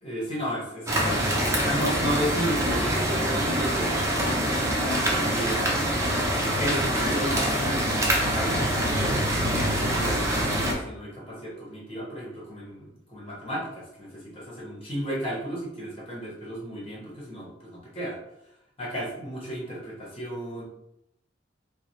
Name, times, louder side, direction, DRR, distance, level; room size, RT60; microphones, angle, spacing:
voice 1, 0.0-5.7 6.6-9.2 9.6-18.2 18.8-20.6, equal, 30° left, -5 dB, 1.1 m, -33 dB
sound 1, 0.9-10.7, right 1 dB, 15° right, 0.5 m, -25 dB
3.3 x 2.0 x 4.1 m, 0.83 s
head